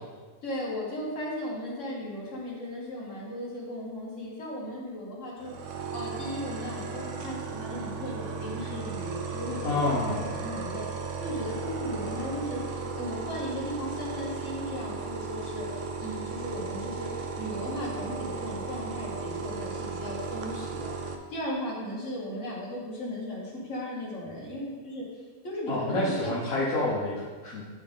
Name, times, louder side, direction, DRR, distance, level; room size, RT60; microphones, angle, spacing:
voice 1, 0.4-10.8 11.2-20.9 21.3-26.3, left 1 dB, 60° left, -5 dB, 1.9 m, -36 dB
sound 1, 5.4-21.1, right 5 dB, 65° right, 0.9 m, -36 dB
voice 2, 9.6-10.3 25.7-27.7, left 2 dB, 75° left, -8 dB, 1.5 m, -28 dB
9.6 x 3.7 x 3.6 m, 1.4 s
omnidirectional pair, 1.5 m